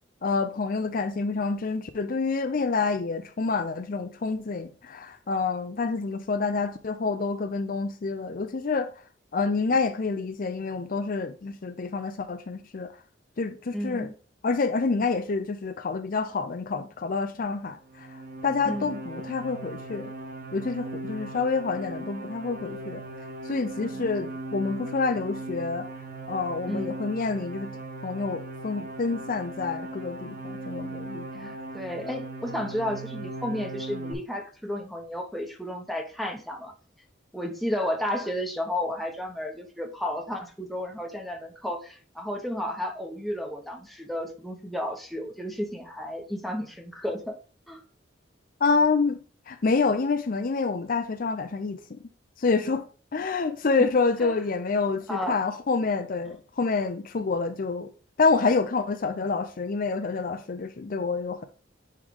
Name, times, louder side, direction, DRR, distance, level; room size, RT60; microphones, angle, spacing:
voice 1, 0.2-8.9 9.3-12.9 13.4-14.1 14.4-18.1 18.4-20.1 20.5-23.0 23.5-25.9 26.3-27.7 28.0-31.5 48.6-49.2 49.5-52.0 52.4-52.8 53.1-57.9 58.2-61.4, left 4 dB, 50° left, 0.5 m, -27 dB
voice 2, 13.7-14.1 18.6-19.0 23.8-24.1 26.7-26.9 31.4-36.7 37.3-47.4 47.7-47.8 53.8-53.9 54.2-54.3 55.1-55.4, left 1 dB, ahead, 1.0 m, -32 dB
sound 1, 17.9-34.1, right 2 dB, 50° right, 1.0 m, -38 dB
9.6 x 3.3 x 3.7 m
head